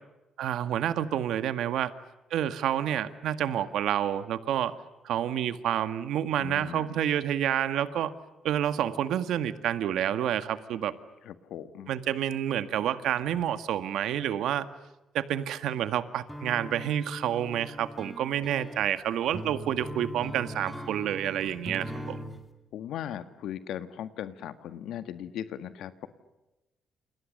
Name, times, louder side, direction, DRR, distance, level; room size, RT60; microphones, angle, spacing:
voice 1, 0.4-1.9 2.3-4.8 5.0-8.1 8.4-10.9 11.9-14.7 15.1-22.2, right 10 dB, 75° right, 11 dB, 1.9 m, -29 dB
voice 2, 6.4-7.0 11.2-11.9 22.7-26.1, left 10 dB, 75° left, 11 dB, 1.8 m, -38 dB
sound 1, 16.3-22.4, equal, ahead, 2.5 m, -40 dB
29.5 x 29.0 x 6.7 m, 1.0 s
cardioid pair, 170°, 0 cm